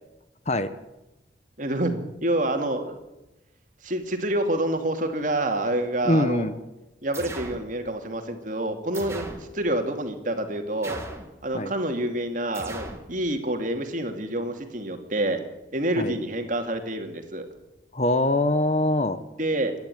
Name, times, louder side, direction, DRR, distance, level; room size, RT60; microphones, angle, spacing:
voice 1, 1.6-3.0 3.8-6.5 7.0-11.0 11.4-15.4 15.7-17.5 19.4-19.7, right 1 dB, 45° right, 5 dB, 2.6 m, -27 dB
voice 2, 6.0-6.6 11.5-11.7 16.0-16.1 17.9-19.2, left 1 dB, 35° left, 11 dB, 1.0 m, -23 dB
sound 1, 7.1-7.7 8.9-9.5 10.8-11.3 12.5-13.1, right 1 dB, 15° right, 2.2 m, -37 dB
25.5 x 11.0 x 9.3 m, 0.96 s
head